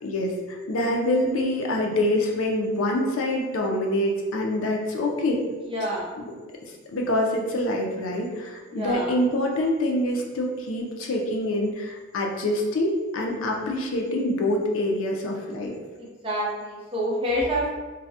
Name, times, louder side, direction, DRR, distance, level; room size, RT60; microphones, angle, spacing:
voice 1, 0.0-5.4 6.2-6.3 6.9-15.7, left 1 dB, 85° left, 0 dB, 0.4 m, -25 dB
voice 2, 5.7-6.1 8.7-9.1 16.2-17.7, equal, 30° right, -4 dB, 0.6 m, -27 dB
2.3 x 2.0 x 2.7 m, 1.3 s
head